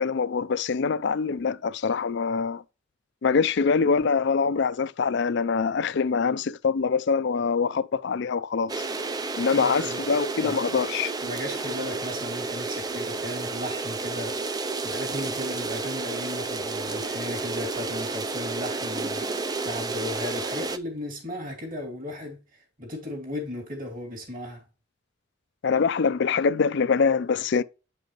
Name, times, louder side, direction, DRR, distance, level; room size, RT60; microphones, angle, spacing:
voice 1, 0.0-2.6 3.2-8.8 9.4-11.1 25.6-27.6, left 5 dB, 55° left, 0.4 m, -24 dB
sound 1, 8.7-20.8, right 3 dB, 20° right, 0.4 m, -31 dB
voice 2, 9.5-10.0 10.4-10.6 11.2-24.6, left 1 dB, 40° right, 2.4 m, -36 dB
8.1 x 5.3 x 3.0 m
head